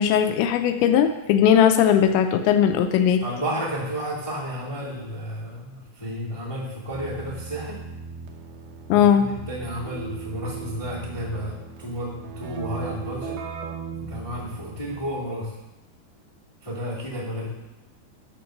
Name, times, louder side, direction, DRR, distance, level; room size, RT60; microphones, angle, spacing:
voice 1, 0.0-3.2 8.9-9.3, left 9 dB, 85° left, 8 dB, 2.7 m, -18 dB
voice 2, 3.2-7.8 8.9-13.4 13.9-15.5 16.6-17.5, equal, 40° left, -8 dB, 0.4 m, -32 dB
Keyboard (musical), 6.9-15.3, right 6 dB, 90° right, 1.9 m, -38 dB
11.5 x 3.9 x 6.3 m, 1.0 s
omnidirectional pair, 5.3 m